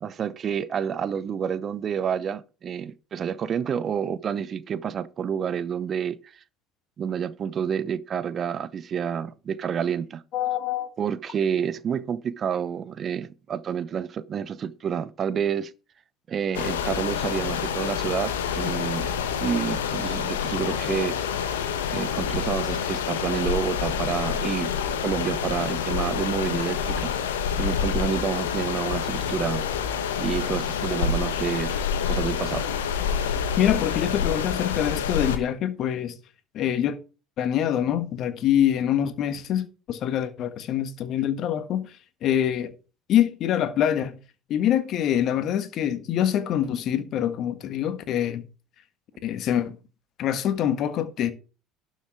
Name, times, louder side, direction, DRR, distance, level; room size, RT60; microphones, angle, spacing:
voice 1, 0.0-6.3 7.0-10.2 11.0-15.7 16.3-19.1 19.4-21.1 21.9-24.7 25.0-27.1 27.6-29.6 30.2-31.8 32.0-32.7, right 7 dB, 40° right, 0.8 m, -29 dB
voice 2, 10.3-10.9 33.6-36.2 36.5-37.0 37.4-42.0 42.2-42.7 43.1-44.2 44.5-48.4 49.2-49.8 50.2-51.3, left 10 dB, 50° left, 1.4 m, -25 dB
sound 1, 16.5-35.4, left 7 dB, 80° left, 1.3 m, -27 dB
12.0 x 6.5 x 4.7 m
hypercardioid pair, 65°, 0 cm